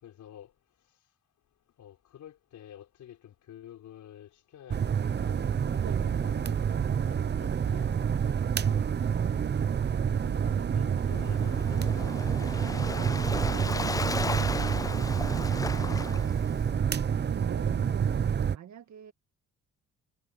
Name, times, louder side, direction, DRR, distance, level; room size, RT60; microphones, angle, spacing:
voice 1, 0.0-0.5 1.8-6.6 7.1-8.1 8.6-9.2 10.0-13.4 14.5-15.1 15.5-17.1, left 11 dB, 75° left, 5.1 m, -50 dB
sound 1, 4.7-18.6, right 7 dB, 35° right, 0.7 m, -28 dB
voice 2, 5.8-6.2 12.5-13.9 17.3-19.1, right 9 dB, 65° right, 2.4 m, -46 dB
Waves surf, 11.0-16.7, left 3 dB, 10° left, 0.4 m, -36 dB
cardioid pair, 90°, 30 cm